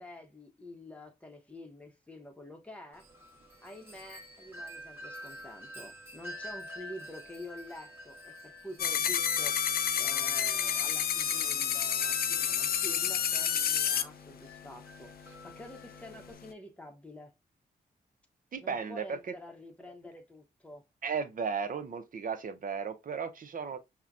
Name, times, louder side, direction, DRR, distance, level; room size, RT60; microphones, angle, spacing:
voice 1, 0.0-3.1 3.6-17.3 18.6-20.8, left 1 dB, 10° left, 0.8 m, -48 dB
Wind chime, 2.9-16.3, equal, 15° right, 1.1 m, -49 dB
sound 1, 8.8-14.0, left 8 dB, 70° left, 0.4 m, -29 dB
voice 2, 18.5-19.2 21.0-23.8, right 6 dB, 55° right, 0.6 m, -35 dB
5.5 x 2.2 x 2.4 m
cardioid pair, 75°, 16 cm